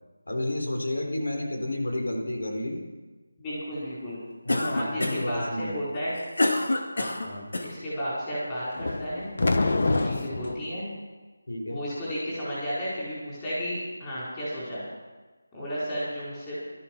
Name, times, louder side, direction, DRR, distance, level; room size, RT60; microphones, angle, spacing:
voice 1, 0.3-2.8 4.4-5.8 7.2-7.5 9.9-10.2 11.5-11.8, left 1 dB, 90° left, 2 dB, 4.3 m, -31 dB
voice 2, 3.4-4.2 4.7-6.1 6.9-7.1 7.6-9.3 9.9-10.9 11.7-14.8 15.5-16.6, equal, 10° left, -9 dB, 4.6 m, -33 dB
Cough, 4.5-5.4 5.9-7.7, left 2 dB, 70° left, 2.2 m, -27 dB
sound 1, 8.8-10.6, left 2 dB, 40° left, 1.0 m, -26 dB
16.0 x 12.5 x 6.1 m, 1.3 s
figure-of-eight pair, 180°, 0 cm